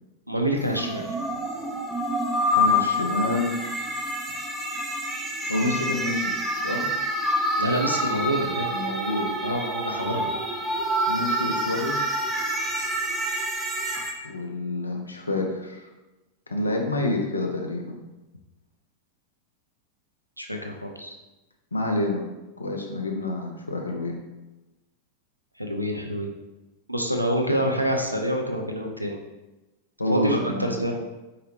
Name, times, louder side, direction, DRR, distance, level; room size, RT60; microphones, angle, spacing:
voice 1, 0.3-1.1 7.6-8.7 9.4-10.3 20.4-21.1 25.6-26.3 26.9-29.2 30.1-30.9, equal, 90° right, 2 dB, 0.4 m, -27 dB
sound 1, 0.6-14.1, equal, 15° right, 0.6 m, -27 dB
voice 2, 2.5-3.6 5.5-6.3 6.6-6.9 8.7-9.3 11.1-12.2 14.2-15.9 16.5-18.0 21.7-22.2 22.6-24.2 30.0-30.8, left 2 dB, 80° left, 2 dB, 0.6 m, -28 dB
4.7 x 2.8 x 3.0 m, 1.1 s
figure-of-eight pair, 90°, 0 cm